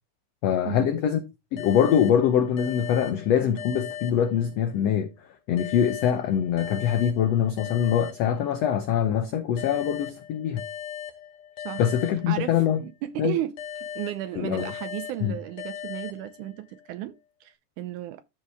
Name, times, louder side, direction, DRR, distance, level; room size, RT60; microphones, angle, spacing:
voice 1, 0.4-1.2 1.5-10.6 11.8-12.8 13.2-13.4 14.4-14.7 15.2-15.4, left 9 dB, 90° left, 1.4 m, -24 dB
sound 1, 1.6-4.9 5.6-8.9 9.6-12.9 13.6-16.9, left 9 dB, 55° left, 1.8 m, -39 dB
voice 2, 12.3-18.2, right 13 dB, 80° right, 1.8 m, -34 dB
13.0 x 4.6 x 3.4 m
omnidirectional pair, 3.9 m